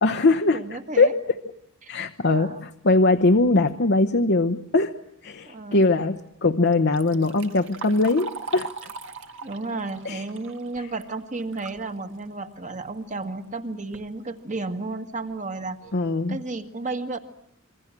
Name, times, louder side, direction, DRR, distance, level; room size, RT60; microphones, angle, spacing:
voice 1, 0.0-1.1 1.9-4.9 5.2-8.9 10.0-10.2 15.9-16.4, left 3 dB, 55° left, 6 dB, 0.9 m, -21 dB
voice 2, 0.5-1.2 1.8-1.9 2.3-2.6 5.5-5.8 9.4-15.8 16.3-17.2, right 3 dB, 35° right, 6 dB, 1.7 m, -33 dB
Liquid, 6.7-11.8 12.2-12.3 13.2-13.3 13.7-14.1 14.7-14.8 15.3-15.4 15.8-16.1, right 4 dB, 60° right, 1.9 m, -40 dB
27.5 x 22.5 x 7.5 m, 0.81 s
head